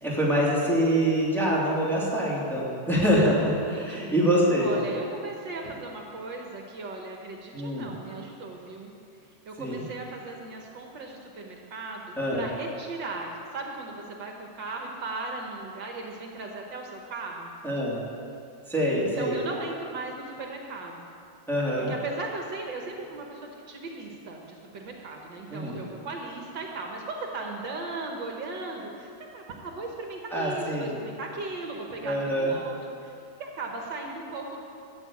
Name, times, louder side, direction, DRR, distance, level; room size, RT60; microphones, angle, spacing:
voice 1, 0.0-4.7 7.5-7.9 9.6-9.8 12.2-12.5 17.6-18.0 18.7-19.3 21.5-21.9 25.5-25.8 30.3-30.9 32.0-32.5, equal, ahead, -6 dB, 2.9 m, -25 dB
voice 2, 3.7-4.1 4.6-8.9 9.5-17.5 19.2-21.1 21.7-34.6, right 3 dB, 70° right, 1 dB, 1.9 m, -37 dB
13.5 x 7.9 x 8.6 m, 2.5 s
omnidirectional pair, 2.1 m